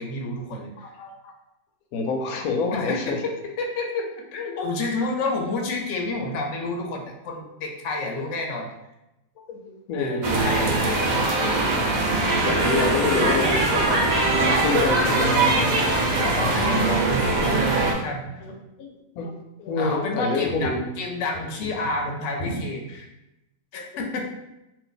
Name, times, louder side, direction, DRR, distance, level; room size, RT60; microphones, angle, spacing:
voice 1, 0.0-0.7 2.7-8.7 9.9-11.3 11.9-12.2 16.2-18.6 19.8-23.1 23.7-24.2, left 2 dB, 65° left, 1 dB, 0.9 m, -30 dB
voice 2, 0.8-1.3 1.9-3.2 9.5-10.3 11.6-11.7 12.2-16.1 18.4-20.9 22.4-22.6 23.7-23.9, left 3 dB, 90° left, 2 dB, 1.1 m, -28 dB
sound 1, 10.2-17.9, right 2 dB, 70° right, 0.4 m, -21 dB
2.6 x 2.5 x 3.8 m, 0.92 s
omnidirectional pair, 1.5 m